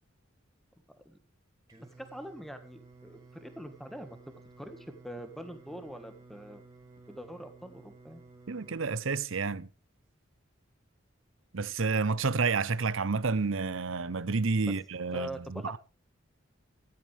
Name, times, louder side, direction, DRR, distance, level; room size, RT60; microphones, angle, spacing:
Singing, 1.7-8.9, right 3 dB, 20° right, 4.9 m, -55 dB
voice 1, 1.8-6.6 7.1-8.2 14.6-14.7 15.1-15.8, equal, ahead, 1.6 m, -44 dB
voice 2, 8.5-9.7 11.5-15.8, right 4 dB, 75° right, 0.8 m, -30 dB
14.0 x 13.5 x 3.5 m
head